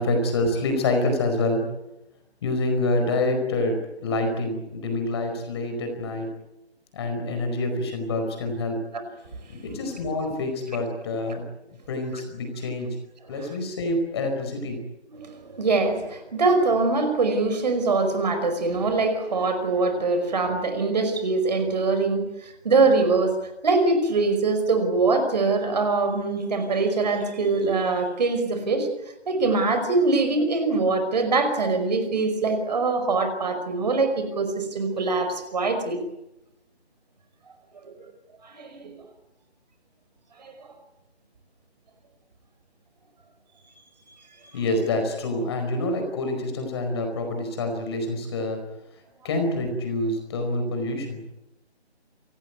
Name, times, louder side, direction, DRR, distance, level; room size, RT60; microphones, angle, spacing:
voice 1, 0.0-1.6 2.4-6.3 6.9-8.8 9.5-11.4 11.9-12.9 13.3-14.8 44.5-48.6 49.2-51.2, left 2 dB, 25° left, 5 dB, 4.8 m, -26 dB
voice 2, 15.1-28.9 29.3-36.0 37.8-37.9 38.4-38.9 40.4-40.5, right 3 dB, 40° right, 8 dB, 5.3 m, -23 dB
27.0 x 18.5 x 9.5 m, 0.92 s
figure-of-eight pair, 160°, 33 cm